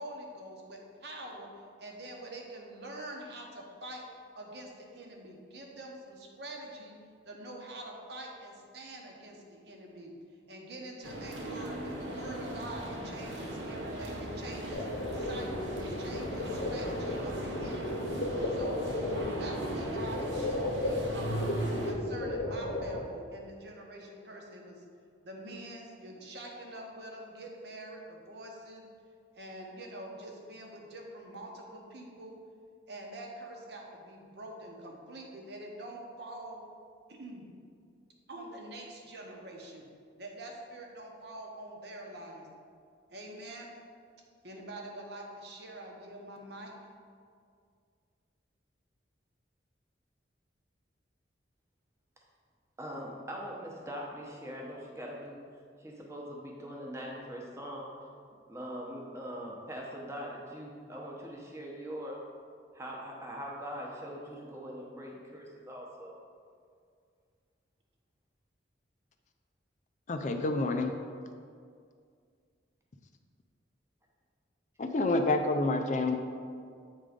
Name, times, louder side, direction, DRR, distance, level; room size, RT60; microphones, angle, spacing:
voice 1, 0.0-1.5 1.8-4.0 4.3-7.0 7.2-10.1 10.5-14.9 15.1-18.1 18.5-18.9 19.4-24.8 25.2-28.9 29.3-32.4 32.9-36.6 37.1-37.5 38.3-39.8 40.2-42.5 43.1-43.7 44.4-46.7, right 1 dB, 60° right, 0 dB, 1.0 m, -45 dB
sound 1, 11.0-21.9, right 1 dB, 85° right, 1.0 m, -39 dB
sound 2, 14.7-23.0, left 1 dB, 70° left, 0.9 m, -34 dB
voice 2, 52.8-55.4 55.8-58.1 58.5-62.2 62.7-66.1, equal, 15° right, -2 dB, 0.9 m, -42 dB
voice 3, 70.1-70.9 74.8-76.2, left 2 dB, 40° left, 5 dB, 0.4 m, -28 dB
8.1 x 3.7 x 5.1 m, 2.2 s
head